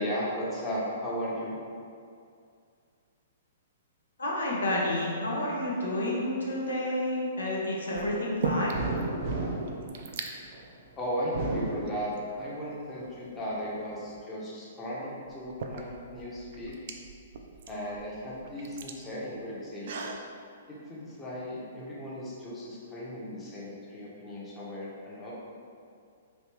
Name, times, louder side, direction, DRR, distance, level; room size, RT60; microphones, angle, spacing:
voice 1, 0.0-1.6 11.0-16.7 17.7-20.2 20.7-25.3, equal, 15° left, -7 dB, 0.8 m, -36 dB
voice 2, 4.2-8.8, left 1 dB, 85° left, -4 dB, 0.7 m, -30 dB
sound 1, 6.7-7.1 7.9-9.0 9.3-9.4 9.6-10.3 11.1-11.3 11.9-12.8 14.5-14.6 15.2-20.3, right 4 dB, 60° right, 0.3 m, -38 dB
sound 2, 8.7-10.6 11.2-12.5 13.0-13.9, right 2 dB, 45° right, 0.7 m, -34 dB
3.2 x 2.7 x 3.0 m, 2.3 s
hypercardioid pair, 125°, 0 cm